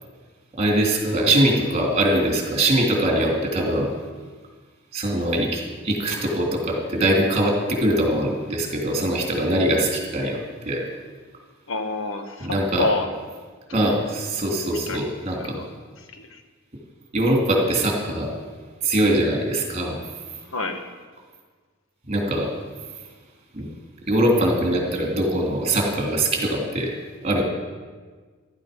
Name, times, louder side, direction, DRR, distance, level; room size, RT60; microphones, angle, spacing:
voice 1, 0.6-3.9 4.9-10.8 12.4-12.9 13.7-15.6 17.1-18.3 18.8-20.0 22.1-22.5 23.5-23.7 24.1-26.9 27.2-27.4, right 1 dB, 30° right, 0 dB, 3.2 m, -22 dB
voice 2, 11.7-12.5 12.8-13.1 13.7-13.8 14.9-15.1 15.4-15.7 16.2-16.3 20.5-20.8, left 3 dB, 75° left, 6 dB, 1.5 m, -27 dB
14.5 x 12.5 x 5.3 m, 1.5 s
head